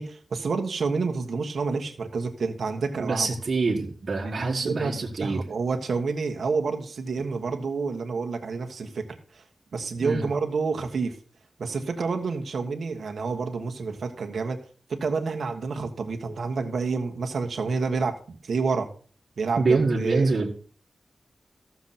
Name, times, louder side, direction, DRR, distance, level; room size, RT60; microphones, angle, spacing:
voice 1, 0.0-3.3 4.2-9.0 9.3-9.4 9.7-11.2 11.6-14.6 14.9-18.9 19.4-20.4, right 4 dB, 70° right, 3 dB, 1.3 m, -29 dB
voice 2, 3.0-5.4 10.0-10.2 19.6-20.5, right 3 dB, 50° right, -3 dB, 1.6 m, -25 dB
13.5 x 7.1 x 4.2 m, 0.43 s
wide cardioid pair, 170°, 0 cm